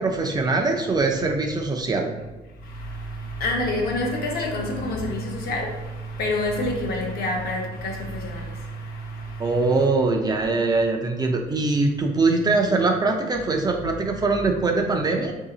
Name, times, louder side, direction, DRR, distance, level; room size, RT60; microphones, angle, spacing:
voice 1, 0.0-2.1 9.4-15.3, right 3 dB, 25° right, 0.5 m, -22 dB
voice 2, 2.6-9.9, left 1 dB, 65° left, 1.0 m, -28 dB
3.9 x 2.7 x 3.8 m
cardioid pair, 110°, 17 cm